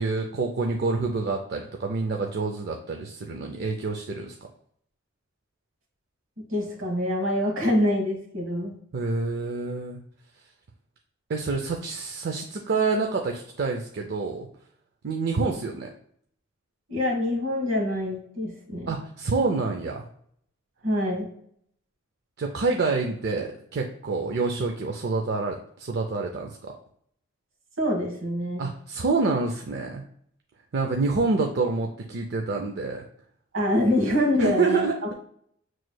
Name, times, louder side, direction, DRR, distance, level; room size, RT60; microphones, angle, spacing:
voice 1, 0.0-4.3 8.9-10.0 11.3-14.5 15.0-15.9 18.9-20.1 22.4-26.7 28.6-30.0 30.7-33.0 34.4-35.1, right 3 dB, 50° right, 2 dB, 0.4 m, -27 dB
voice 2, 6.5-8.8 16.9-19.0 20.8-21.3 27.8-28.7 33.5-34.9, left 1 dB, 70° right, 0 dB, 1.4 m, -25 dB
6.2 x 3.1 x 2.2 m, 0.66 s
head